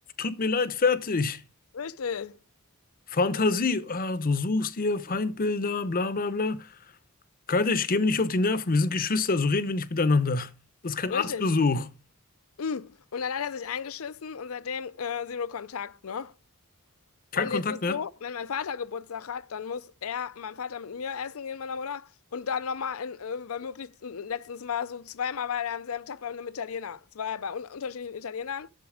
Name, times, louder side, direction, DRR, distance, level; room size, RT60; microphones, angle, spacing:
voice 1, 0.2-1.4 3.1-6.7 7.5-10.5 10.8-11.9 17.3-18.0, left 3 dB, 40° left, 0.7 m, -26 dB
voice 2, 1.7-2.4 11.1-11.5 12.6-16.3 17.3-28.7, left 6 dB, 75° left, 0.5 m, -34 dB
11.5 x 7.2 x 4.9 m
head